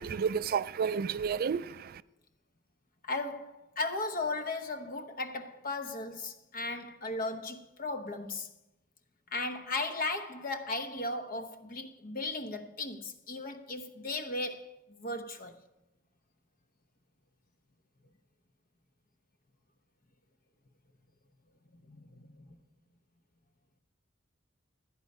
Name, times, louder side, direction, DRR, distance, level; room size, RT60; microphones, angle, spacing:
voice 1, 0.0-2.0, right 6 dB, 50° right, 0.3 m, -31 dB
voice 2, 3.0-8.5 9.3-15.6 21.9-22.5, left 2 dB, 45° left, 0.9 m, -36 dB
13.0 x 9.7 x 5.4 m
head